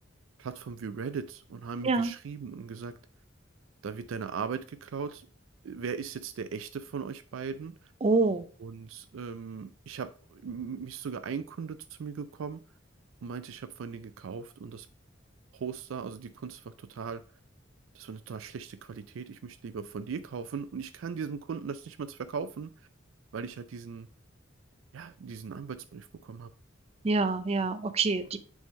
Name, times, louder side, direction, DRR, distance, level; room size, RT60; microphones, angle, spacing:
voice 1, 0.4-2.9 3.8-5.3 5.6-7.9 8.6-12.6 13.2-14.9 15.5-17.2 17.9-22.7 23.3-24.1 24.9-26.5, right 6 dB, 85° right, 0.4 m, -38 dB
voice 2, 8.0-8.4 27.0-28.4, right 3 dB, 30° right, 0.5 m, -26 dB
6.2 x 3.7 x 4.2 m
head